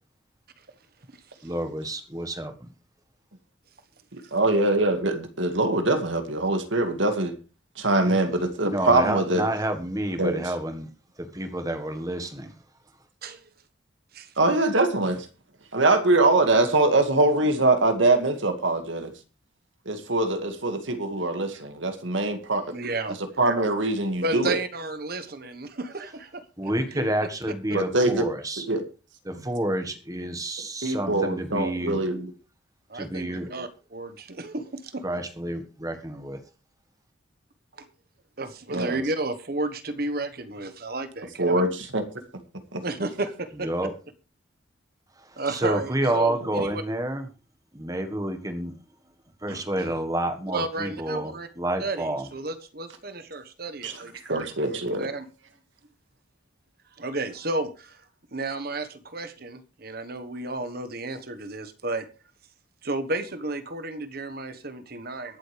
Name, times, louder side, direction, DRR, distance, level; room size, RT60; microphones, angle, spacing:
voice 1, 1.4-2.7 8.7-10.9 11.2-12.5 26.6-28.6 29.2-32.0 32.9-33.5 35.0-36.4 43.6-43.9 45.5-47.3 47.7-48.7 49.4-52.3, right 1 dB, 20° right, 7 dB, 1.6 m, -29 dB
voice 2, 4.3-7.3 7.8-9.5 10.2-10.5 14.4-15.3 15.7-19.1 19.9-22.6 23.4-24.6 27.7-28.2 28.7-28.8 29.3-29.4 30.8-32.3 38.7-39.0 41.4-42.0 42.7-42.8 53.8-55.1, right 2 dB, 75° right, 7 dB, 2.1 m, -23 dB
voice 3, 22.7-23.2 24.2-27.0 32.9-35.0 37.8-37.9 38.4-41.6 42.8-43.7 45.4-46.8 49.5-49.9 50.5-51.5 51.8-55.3 57.0-58.0 58.3-62.0 62.8-65.4, right 2 dB, 50° right, 11 dB, 1.3 m, -32 dB
23.0 x 7.8 x 3.4 m, 0.33 s
head